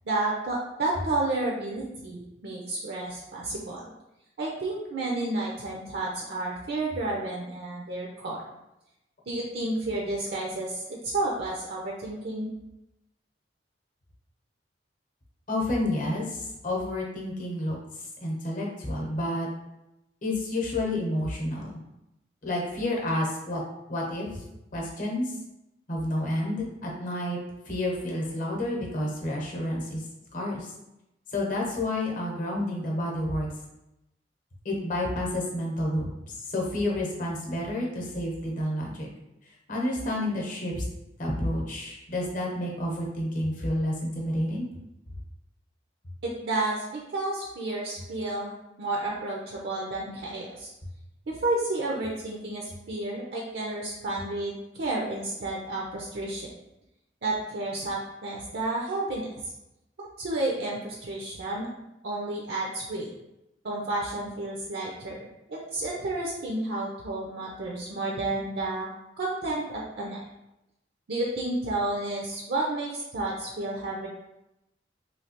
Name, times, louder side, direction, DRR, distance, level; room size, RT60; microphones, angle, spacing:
voice 1, 0.1-3.8 4.4-8.4 9.3-12.5 46.2-50.7 51.3-56.5 57.2-59.4 60.0-61.7 62.0-63.1 63.6-68.9 69.2-70.2 71.1-74.1, right 2 dB, 60° right, -2 dB, 0.5 m, -31 dB
voice 2, 15.5-19.5 20.2-21.8 22.4-23.6 23.9-24.4 24.7-25.4 25.9-27.4 27.7-30.0 30.3-30.7 31.3-33.5 34.6-36.1 36.4-39.1 39.7-40.8 41.2-44.7, left 1 dB, 45° left, -1 dB, 0.8 m, -30 dB
3.1 x 2.7 x 2.8 m, 0.90 s
head